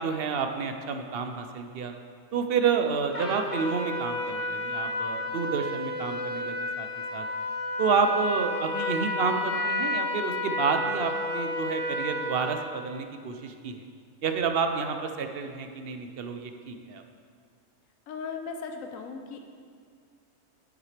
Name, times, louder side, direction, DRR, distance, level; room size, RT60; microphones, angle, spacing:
voice 1, 0.0-1.9 2.3-7.3 7.8-13.8 14.2-17.0, right 5 dB, 55° right, 6 dB, 0.7 m, -29 dB
Trumpet, 3.1-12.7, left 2 dB, 30° left, 0.8 m, -31 dB
voice 2, 18.1-19.4, left 5 dB, 85° left, 5 dB, 1.1 m, -37 dB
9.4 x 8.8 x 3.3 m, 2.1 s
omnidirectional pair, 1.4 m